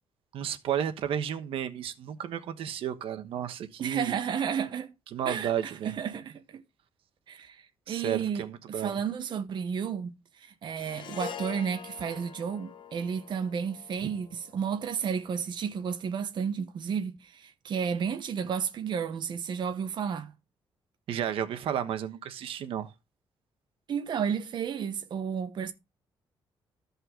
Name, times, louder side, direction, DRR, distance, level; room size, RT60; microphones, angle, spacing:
voice 1, 0.3-4.2 5.1-5.9 7.9-9.0 14.0-14.1 21.1-22.9, right 9 dB, 85° right, 1.1 m, -32 dB
voice 2, 3.8-4.9 5.3-6.6 7.3-20.3 23.9-25.7, right 7 dB, 55° right, 1.0 m, -32 dB
Harp, 10.8-15.2, left 8 dB, 55° left, 1.2 m, -44 dB
14.0 x 5.5 x 3.7 m
cardioid pair, 125°, 9 cm